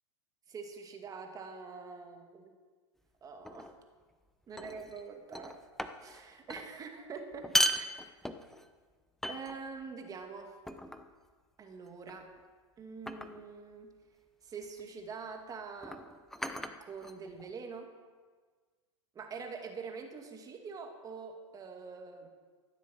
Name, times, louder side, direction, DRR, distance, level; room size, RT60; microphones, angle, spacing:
voice 1, 0.5-2.5 3.2-3.7 4.5-5.6 6.0-7.9 9.3-10.6 11.6-12.3 12.8-13.9 14.4-16.0 16.8-17.9 19.1-22.3, right 5 dB, 25° right, 4 dB, 2.1 m, -45 dB
sound 1, 3.4-3.8 4.6-5.0 5.3-6.2 6.5-6.7 7.3-8.7 9.2-9.8 10.7-11.1 12.1-12.4 13.1-13.5 14.6-14.8 15.8-17.5, equal, ahead, 0.7 m, -36 dB
14.0 x 7.3 x 7.6 m, 1.5 s
hypercardioid pair, 115°, 16 cm